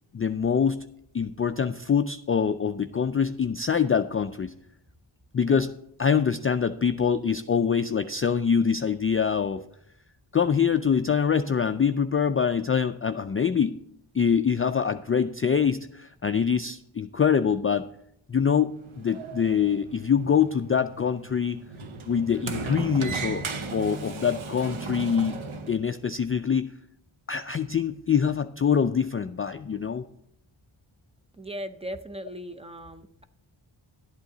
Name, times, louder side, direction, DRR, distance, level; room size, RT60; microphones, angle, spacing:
voice 1, 0.1-0.8 1.1-4.5 5.3-5.7 6.0-9.6 10.3-13.7 14.1-17.9 18.3-21.6 22.1-23.4 23.7-25.4 25.7-26.7 27.3-30.0, left 7 dB, 30° left, 8 dB, 0.3 m, -24 dB
Sliding door, 18.7-25.7, right 4 dB, 75° right, 1.1 m, -36 dB
voice 2, 31.4-33.3, equal, 10° right, 8 dB, 0.6 m, -38 dB
11.5 x 8.2 x 3.8 m, 0.74 s
cardioid pair, 60°, 49 cm